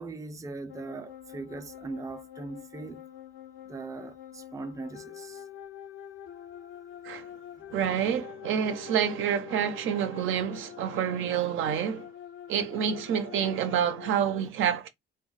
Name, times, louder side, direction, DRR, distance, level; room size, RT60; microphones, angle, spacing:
voice 1, 0.0-3.0 3.7-5.4 7.6-7.7 10.5-10.6 11.7-11.8 13.4-13.5, right 3 dB, 15° right, 0.4 m, -40 dB
sound 1, 0.7-14.1, left 10 dB, 75° left, 0.5 m, -45 dB
voice 2, 7.7-12.1 12.5-14.9, right 8 dB, 80° right, 0.6 m, -28 dB
2.2 x 2.0 x 3.8 m
cardioid pair, 90°, 20 cm